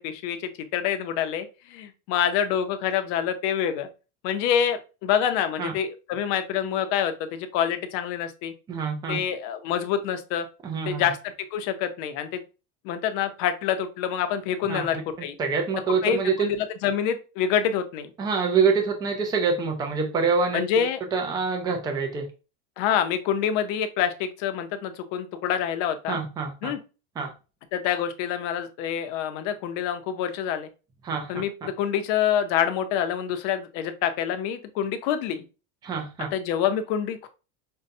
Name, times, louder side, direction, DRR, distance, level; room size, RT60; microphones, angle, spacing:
voice 1, 0.0-3.9 4.2-8.5 9.1-10.5 10.9-12.4 12.8-15.3 15.9-18.1 20.5-21.0 22.8-26.2 26.6-26.8 27.7-30.7 31.3-35.4 36.3-37.3, left 9 dB, 50° left, 0.7 m, -26 dB
voice 2, 8.7-9.2 10.6-11.1 14.7-15.0 15.4-16.5 18.2-20.9 21.1-22.3 26.1-26.7 27.2-27.3 31.0-31.3 31.6-31.7 35.8-36.3, right 5 dB, 10° right, 0.4 m, -26 dB
5.4 x 2.2 x 2.6 m
supercardioid pair, 160°, 37 cm